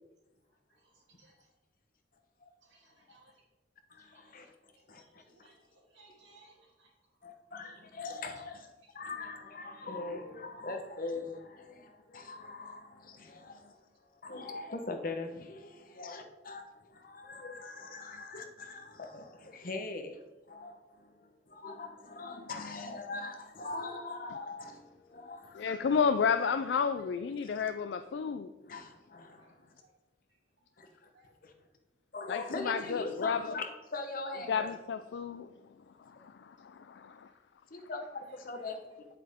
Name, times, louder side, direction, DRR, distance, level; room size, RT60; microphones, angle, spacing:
voice 1, 0.7-1.3 2.6-3.4 4.1-4.3 4.7-6.9 8.3-8.4 13.7-13.8 17.9-18.0 29.3-29.5 29.8-29.9 31.1-31.3 32.4-32.9 38.3-38.7, right 2 dB, 90° right, -3 dB, 3.0 m, -62 dB
voice 2, 3.9-4.5 4.9-5.5 7.2-13.7 14.2-20.2 20.5-25.7 27.4-27.6 28.6-29.7 30.8-31.1 31.4-31.5 32.1-34.7 37.7-39.1, left 3 dB, 50° left, 5 dB, 1.0 m, -42 dB
voice 3, 25.5-28.5 32.3-33.6 34.5-35.5 36.0-37.3, left 6 dB, 70° left, 9 dB, 0.3 m, -31 dB
7.7 x 7.7 x 3.6 m, 1.1 s
head